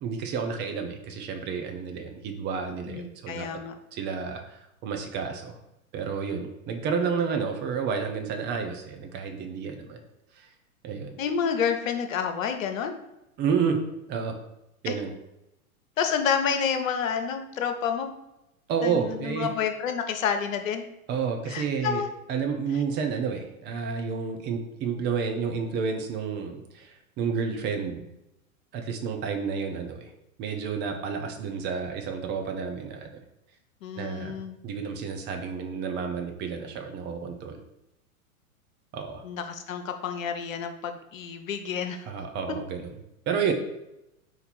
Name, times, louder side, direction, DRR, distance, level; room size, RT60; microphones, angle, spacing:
voice 1, 0.0-3.5 3.9-5.6 5.9-10.0 10.4-10.5 10.8-11.2 13.4-13.8 14.1-14.4 14.8-15.1 18.7-19.5 21.1-22.0 22.3-28.0 28.7-30.1 30.4-33.2 34.0-37.6 38.9-39.2 42.1-42.9 43.3-43.5, right 6 dB, 25° right, 4 dB, 0.6 m, -30 dB
voice 2, 2.9-3.7 11.2-13.0 14.8-14.9 16.0-18.1 18.8-20.8 21.5-22.1 33.8-34.6 39.2-42.1, left 7 dB, 65° left, 7 dB, 0.7 m, -29 dB
4.4 x 2.6 x 4.2 m, 0.87 s
figure-of-eight pair, 100°, 43 cm